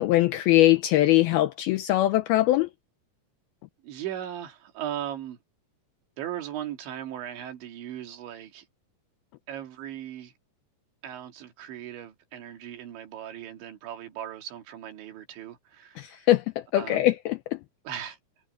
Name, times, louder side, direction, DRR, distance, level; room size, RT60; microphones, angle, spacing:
voice 1, 0.0-2.7 16.0-17.6, left 15 dB, 80° left, 2.2 m, -22 dB
voice 2, 3.8-5.4 6.2-8.7 9.5-10.3 11.0-16.3 16.7-17.0 17.8-18.2, right 11 dB, 90° right, 4.8 m, -38 dB
omnidirectional pair, 5.1 m